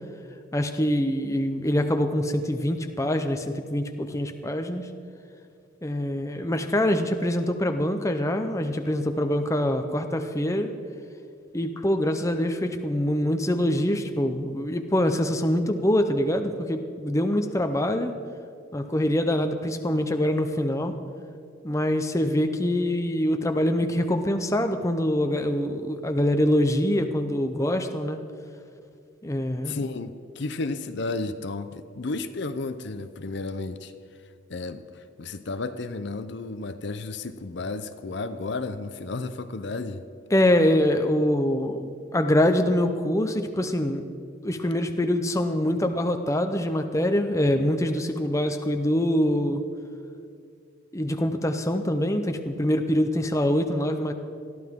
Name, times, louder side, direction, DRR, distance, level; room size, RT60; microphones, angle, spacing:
voice 1, 0.5-4.9 5.8-10.7 11.5-18.1 18.7-21.0 21.6-28.2 29.2-29.8 40.3-44.1 44.4-49.6 50.9-54.1, left 1 dB, 15° left, 6 dB, 0.6 m, -24 dB
voice 2, 29.6-40.0, left 3 dB, 55° left, 10 dB, 0.6 m, -33 dB
21.5 x 14.0 x 3.7 m, 2.3 s
head